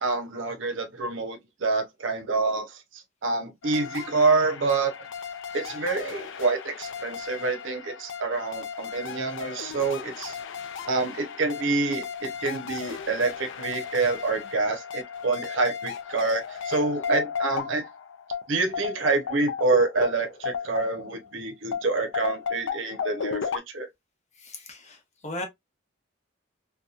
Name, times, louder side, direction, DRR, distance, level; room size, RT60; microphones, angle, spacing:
voice 1, 0.0-4.9 5.5-10.4 10.9-17.8 18.5-23.9, right 3 dB, 75° right, 0.7 m, -27 dB
sound 1, 3.6-21.3 21.7-23.6, left 7 dB, 70° left, 0.4 m, -35 dB
voice 2, 24.4-25.0 25.2-25.4, left 1 dB, 35° left, 0.8 m, -36 dB
2.7 x 2.2 x 2.3 m
head